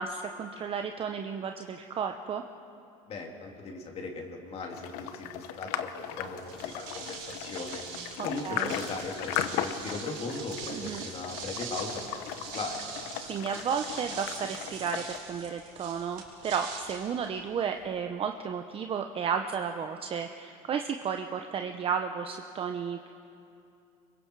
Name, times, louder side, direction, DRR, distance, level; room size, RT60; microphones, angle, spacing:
voice 1, 0.0-2.4 8.2-8.7 10.7-11.1 13.3-23.1, right 7 dB, 35° right, 6 dB, 0.8 m, -33 dB
voice 2, 3.1-7.8 8.2-12.2 12.5-12.7, left 3 dB, 40° left, 1 dB, 3.0 m, -38 dB
sound 1, 4.7-15.2, left 11 dB, 75° left, 1.0 m, -37 dB
sound 2, 6.4-17.8, right 6 dB, 85° right, 4.5 m, -43 dB
26.0 x 22.5 x 4.8 m, 2.6 s
supercardioid pair, 120°, 16 cm